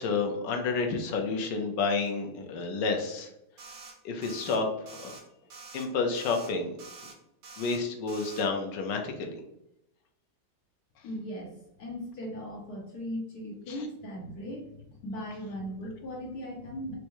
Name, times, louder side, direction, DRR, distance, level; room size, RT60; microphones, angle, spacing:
voice 1, 0.0-3.3 4.0-5.1 5.7-6.8 7.6-9.4 13.7-13.8, left 4 dB, 85° left, 4 dB, 1.3 m, -30 dB
sound 1, 3.6-3.9 4.2-4.6 4.9-5.2 5.5-5.9 6.1-6.5 6.8-7.1 7.4-7.8 8.1-8.4, right 4 dB, 75° right, 1.4 m, -46 dB
voice 2, 11.0-17.0, equal, 65° left, -1 dB, 1.1 m, -38 dB
4.6 x 2.1 x 2.9 m, 0.83 s
omnidirectional pair, 1.9 m